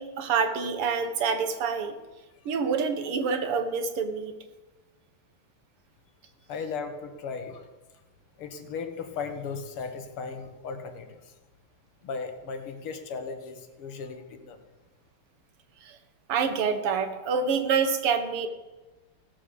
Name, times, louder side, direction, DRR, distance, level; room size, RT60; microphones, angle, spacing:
voice 1, 0.0-2.0 2.5-4.4 16.3-18.5, right 5 dB, 85° right, 8 dB, 2.1 m, -27 dB
voice 2, 6.5-7.7 8.4-11.3 12.0-14.6, left 5 dB, 80° left, 7 dB, 2.2 m, -36 dB
16.5 x 7.5 x 6.9 m, 1.2 s
omnidirectional pair, 2.4 m